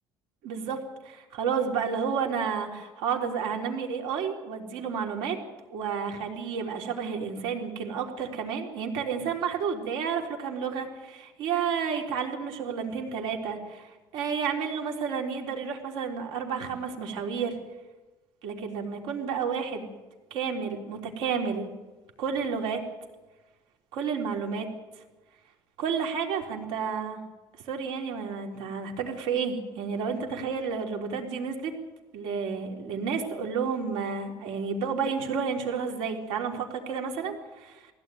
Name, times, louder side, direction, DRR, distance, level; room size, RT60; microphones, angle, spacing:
voice 1, 0.4-5.4 5.7-17.6 18.4-19.9 20.3-21.7 22.2-22.8 23.9-24.7 25.8-27.2 27.7-31.7 32.1-37.9, right 6 dB, 90° right, 2 dB, 3.8 m, -31 dB
20.0 x 16.5 x 9.3 m, 1.2 s
cardioid pair, 175°, 8 cm